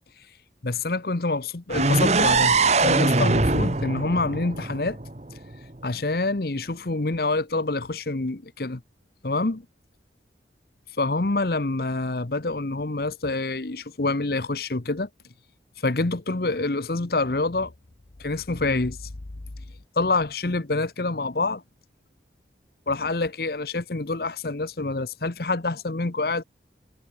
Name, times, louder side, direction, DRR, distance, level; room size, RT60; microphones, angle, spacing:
voice 1, 0.6-5.0 5.8-8.8 9.2-9.6 11.0-15.1 15.8-17.7 18.2-19.1 20.0-21.6 22.9-26.4, left 3 dB, 55° left, 1.0 m, -26 dB
sound 1, 1.7-5.6, right 3 dB, 35° right, 1.3 m, -22 dB
head